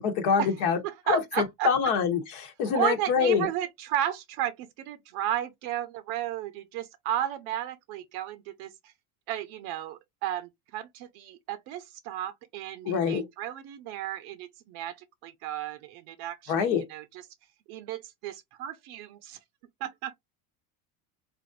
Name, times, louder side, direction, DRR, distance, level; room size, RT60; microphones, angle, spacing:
voice 1, 0.0-0.8 1.1-1.2 1.6-3.5 12.8-13.3 16.5-16.8, left 6 dB, 65° left, 1.0 m, -25 dB
voice 2, 0.8-1.7 2.7-8.9 9.3-15.0 15.2-17.2 17.7-19.4 19.8-20.1, right 12 dB, 70° right, 0.6 m, -33 dB
3.3 x 2.5 x 2.4 m
supercardioid pair, 100°, 45 cm